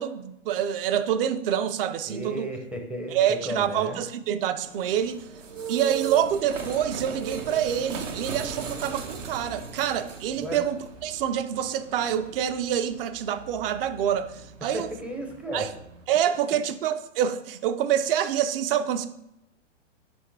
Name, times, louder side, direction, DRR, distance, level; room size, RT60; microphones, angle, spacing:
voice 1, 0.0-2.5 3.1-5.2 5.7-14.9 15.5-15.7 16.1-19.1, right 9 dB, 50° right, 12 dB, 0.6 m, -26 dB
voice 2, 2.1-4.0 10.4-10.6 14.7-15.7, right 1 dB, 5° right, 2 dB, 0.5 m, -34 dB
sound 1, 4.6-16.0, right 5 dB, 85° right, 1.4 m, -38 dB
6.2 x 5.3 x 3.3 m, 0.84 s
hypercardioid pair, 130°, 37 cm